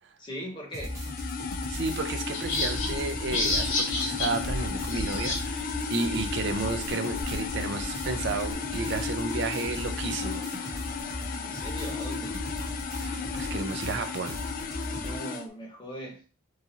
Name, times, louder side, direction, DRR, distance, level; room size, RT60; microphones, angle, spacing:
voice 1, 0.2-1.0 11.4-12.4 14.9-16.2, equal, 25° left, 0.8 m, -40 dB
sound 1, 0.7-15.2, equal, 15° right, 1.0 m, -38 dB
sound 2, 0.8-15.4, left 6 dB, 45° left, 0.3 m, -35 dB
voice 2, 1.7-10.7 13.0-14.4, right 3 dB, 60° right, 0.5 m, -32 dB
sound 3, 2.3-5.4 5.7-5.8 6.2-8.5, left 2 dB, 75° left, 0.8 m, -31 dB
3.1 x 2.4 x 2.7 m
head